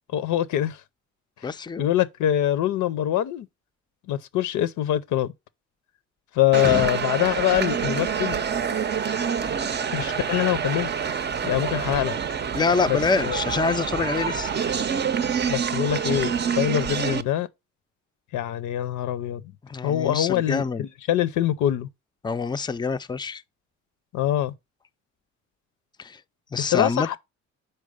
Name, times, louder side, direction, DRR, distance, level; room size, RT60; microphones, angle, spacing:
voice 1, 0.1-0.8 1.8-3.5 4.1-5.3 6.3-8.4 9.9-10.9 11.4-12.2 12.9-13.4 15.5-17.5 18.3-19.4 19.8-21.9 24.1-24.5 26.7-27.2, left 12 dB, 80° left, 0.6 m, -24 dB
voice 2, 1.4-1.9 6.6-6.9 12.5-14.5 19.6-20.9 22.2-23.4 26.0-26.2 26.5-27.2, left 4 dB, 15° left, 0.4 m, -26 dB
sound 1, 6.5-17.2, right 7 dB, 35° right, 0.5 m, -27 dB
5.3 x 4.5 x 4.9 m
cardioid pair, 90°, 30 cm